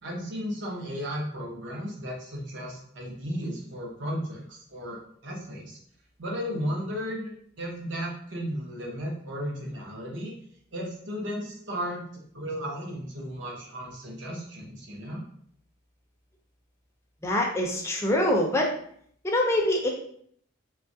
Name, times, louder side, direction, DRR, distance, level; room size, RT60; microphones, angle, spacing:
voice 1, 0.0-5.8 6.2-7.3 7.6-10.3 10.7-15.2, equal, 60° right, -2 dB, 0.7 m, -34 dB
voice 2, 17.2-18.7 19.2-19.9, left 1 dB, 15° left, 0 dB, 0.4 m, -24 dB
3.0 x 2.3 x 2.6 m, 0.65 s
head